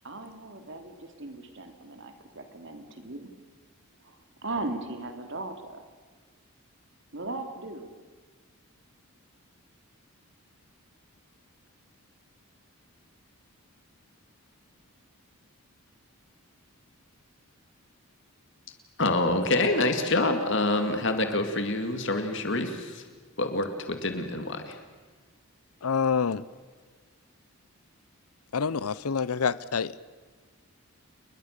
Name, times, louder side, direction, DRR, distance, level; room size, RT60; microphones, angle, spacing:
voice 1, 0.0-3.2 4.0-4.2 4.4-5.8 7.1-7.9, right 2 dB, 55° right, 6 dB, 2.7 m, -37 dB
voice 2, 19.0-23.0 23.4-24.8, left 2 dB, 55° left, 7 dB, 2.3 m, -26 dB
voice 3, 25.8-26.4 28.5-30.0, left 6 dB, 90° left, 18 dB, 0.7 m, -27 dB
29.5 x 22.0 x 6.7 m, 1.5 s
head